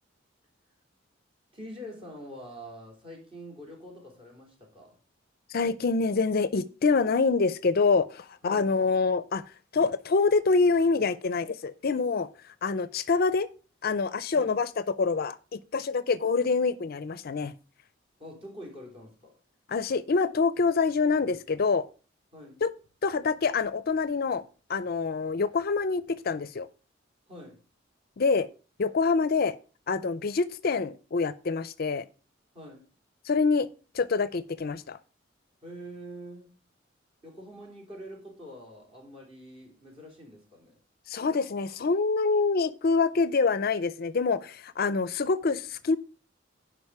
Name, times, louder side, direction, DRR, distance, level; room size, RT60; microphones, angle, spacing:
voice 1, 1.5-4.9 8.4-8.7 14.3-14.5 18.2-19.4 22.3-22.6 27.3-27.6 32.5-32.8 35.6-36.6 37.2-40.8, equal, 30° right, 3.3 m, -45 dB
voice 2, 5.5-9.4 9.7-12.3 12.6-13.5 13.8-17.5 19.7-21.8 22.6-22.7 23.0-24.4 24.7-26.7 28.2-28.5 28.8-29.5 29.9-32.1 33.3-33.7 33.9-35.0 41.1-46.0, left 4 dB, 50° left, 0.5 m, -26 dB
11.0 x 5.1 x 4.7 m
head